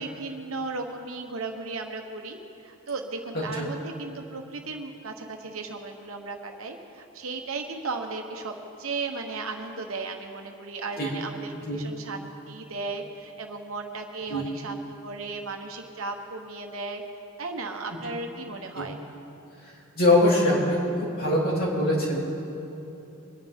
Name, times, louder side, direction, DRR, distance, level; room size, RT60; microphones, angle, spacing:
voice 1, 0.0-8.5 8.8-17.0 17.4-19.0, right 3 dB, 65° right, 3 dB, 1.2 m, -35 dB
voice 2, 19.9-22.2, left 1 dB, 45° left, -5 dB, 3.1 m, -23 dB
23.0 x 10.5 x 3.7 m, 2.9 s
head